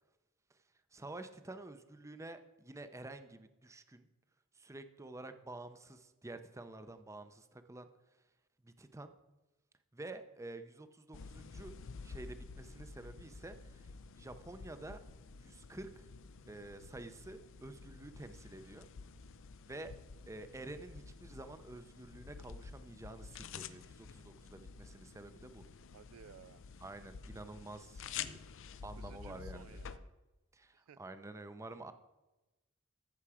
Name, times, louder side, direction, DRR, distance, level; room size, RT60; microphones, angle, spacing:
voice 1, 0.9-4.1 4.6-7.9 8.6-9.1 9.9-11.8 12.0-13.9 14.2-15.0 15.4-16.1 16.5-18.9 19.7-19.9 20.3-25.6 26.8-28.4 28.8-29.8 30.5-31.9, right 2 dB, 15° right, 10 dB, 0.6 m, -49 dB
sound 1, 11.1-30.0, left 6 dB, 65° left, 0.5 m, -50 dB
voice 2, 25.9-26.6 29.0-30.2 30.7-31.0, right 8 dB, 75° right, 16 dB, 0.3 m, -57 dB
14.5 x 5.9 x 4.9 m, 1.1 s
head